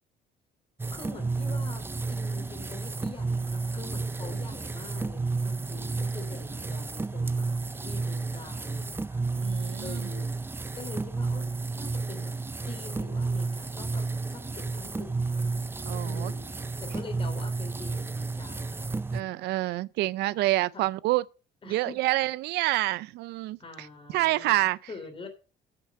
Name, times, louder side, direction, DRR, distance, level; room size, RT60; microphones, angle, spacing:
sound 1, 0.8-19.2, right 3 dB, 15° right, 0.6 m, -31 dB
voice 1, 0.9-7.5 7.7-9.3 9.8-10.3 10.7-12.3 12.6-14.0 14.3-16.5 16.8-19.5 20.7-20.8 21.6-22.0 22.5-22.8 23.6-25.3, left 3 dB, 30° left, 3.1 m, -45 dB
voice 2, 9.3-10.1 15.9-16.3 19.1-21.2 21.7-23.9 24.1-24.8, right 18 dB, 80° right, 0.5 m, -27 dB
8.6 x 6.8 x 7.3 m
cardioid pair, 110°, 17 cm